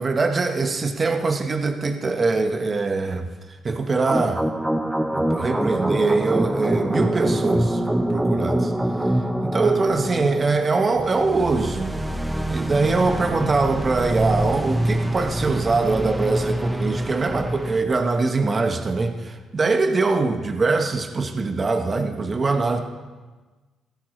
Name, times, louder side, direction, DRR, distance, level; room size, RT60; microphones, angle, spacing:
voice 1, 0.0-4.4 5.1-7.8 8.1-8.7 9.4-12.0 12.5-22.8, right 3 dB, 35° right, 5 dB, 1.1 m, -23 dB
sound 1, 4.1-17.8, right 1 dB, 10° right, 0.8 m, -25 dB
16.0 x 14.5 x 3.2 m, 1.3 s
cardioid pair, 90°, 0 cm